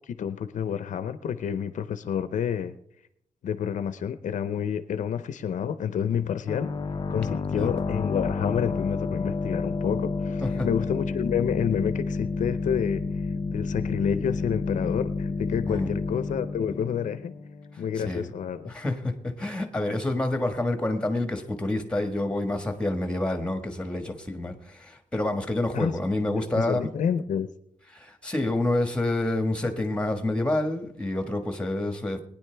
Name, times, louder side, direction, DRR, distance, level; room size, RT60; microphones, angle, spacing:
voice 1, 0.1-2.7 3.4-6.7 7.1-13.0 13.5-17.3 17.8-18.7 25.7-25.9 26.4-27.5, left 8 dB, 70° left, 12 dB, 0.6 m, -29 dB
sound 1, 6.5-17.9, left 4 dB, 35° left, 0.5 m, -30 dB
voice 2, 17.7-18.3 18.6-26.9 27.9-32.2, left 1 dB, 10° left, 6 dB, 1.5 m, -28 dB
22.0 x 10.0 x 3.4 m, 0.74 s
wide cardioid pair, 130°, 13 cm